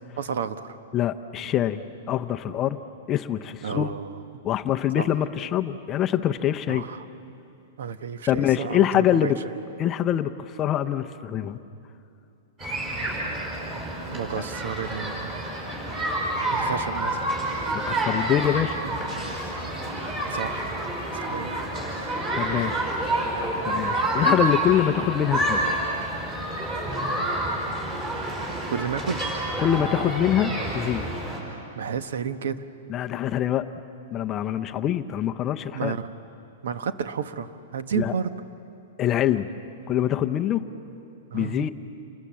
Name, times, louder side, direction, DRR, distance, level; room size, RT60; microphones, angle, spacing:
voice 1, 0.1-0.8 3.6-4.2 5.0-5.2 6.7-7.0 7.8-9.5 14.1-15.4 16.5-17.3 20.3-20.7 21.1-21.6 28.7-29.3 31.7-32.6 35.7-36.1 36.6-38.3 41.3-41.7, right 7 dB, 75° right, 11 dB, 1.1 m, -31 dB
voice 2, 0.9-1.8 2.1-2.8 3.1-3.9 4.4-6.8 8.3-9.4 9.8-11.6 14.4-14.5 17.7-18.8 22.3-22.9 23.6-25.6 29.6-31.0 32.9-33.7 34.1-35.9 37.9-38.1 39.0-39.5 39.9-40.7 41.3-41.7, left 11 dB, 20° left, 7 dB, 0.6 m, -24 dB
sound 1, 12.6-31.4, right 1 dB, 20° right, 4.9 m, -28 dB
28.5 x 21.5 x 7.5 m, 2.7 s
supercardioid pair, 175°, 0 cm